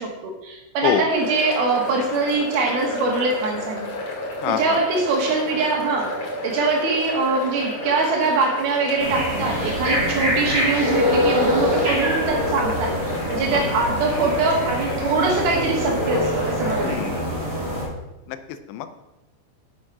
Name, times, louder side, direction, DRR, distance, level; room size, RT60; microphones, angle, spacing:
voice 1, 0.0-3.9 4.5-17.2, right 3 dB, 65° right, 0 dB, 3.0 m, -23 dB
sound 1, 1.1-16.9, left 1 dB, 35° left, 2.8 m, -31 dB
voice 2, 4.4-4.8 12.3-12.4 13.5-13.7 16.8-17.2 18.3-18.9, left 9 dB, 80° left, 10 dB, 2.8 m, -26 dB
sound 2, 9.0-17.9, left 1 dB, 35° right, 3.6 m, -24 dB
8.9 x 6.5 x 5.8 m, 0.99 s
omnidirectional pair, 5.5 m